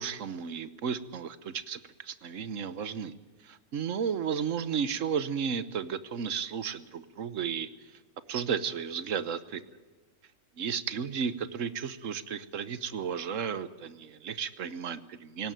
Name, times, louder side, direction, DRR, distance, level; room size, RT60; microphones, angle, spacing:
voice 1, 0.0-3.1 3.4-7.7 8.3-9.6 10.6-15.5, right 7 dB, 60° right, 14 dB, 1.3 m, -33 dB
18.5 x 17.5 x 9.1 m, 1.3 s
omnidirectional pair, 1.5 m